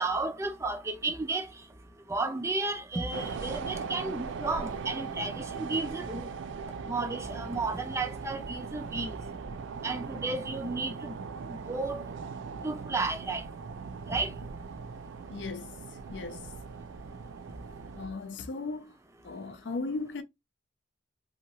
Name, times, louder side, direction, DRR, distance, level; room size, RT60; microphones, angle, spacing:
voice 1, 0.0-1.5 2.1-6.3 6.9-9.2 9.8-11.1 11.5-12.0 12.6-13.4 14.1-14.3, right 3 dB, 15° right, 0.4 m, -33 dB
subway train pulls out of station, 3.1-18.1, right 5 dB, 85° right, 0.4 m, -39 dB
voice 2, 15.3-15.7 16.1-16.5 17.9-18.9 19.2-20.2, left 3 dB, 70° left, 0.5 m, -36 dB
2.8 x 2.3 x 2.7 m
head